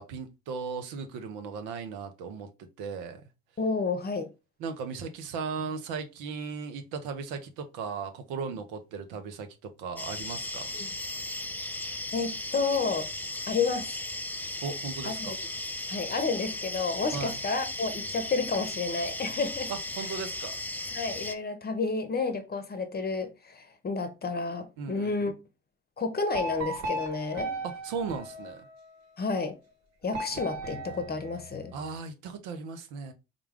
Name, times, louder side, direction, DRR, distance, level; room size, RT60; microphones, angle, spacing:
voice 1, 0.0-3.2 4.6-10.7 14.6-15.3 17.1-17.4 19.7-20.6 24.8-25.3 27.6-28.7 31.7-33.1, right 5 dB, 75° right, 0.6 m, -37 dB
voice 2, 3.6-4.3 10.7-10.9 12.1-13.1 13.5-13.9 15.0-15.4 15.9-19.7 20.0-20.1 20.9-25.3 26.0-27.5 29.2-29.6 30.0-31.7, left 4 dB, 30° left, 0.8 m, -30 dB
sound 1, 10.0-21.3, left 2 dB, 5° left, 0.4 m, -36 dB
sound 2, 26.3-29.0 30.1-31.9, right 2 dB, 55° right, 1.2 m, -37 dB
3.7 x 2.3 x 3.4 m
hypercardioid pair, 50°, 32 cm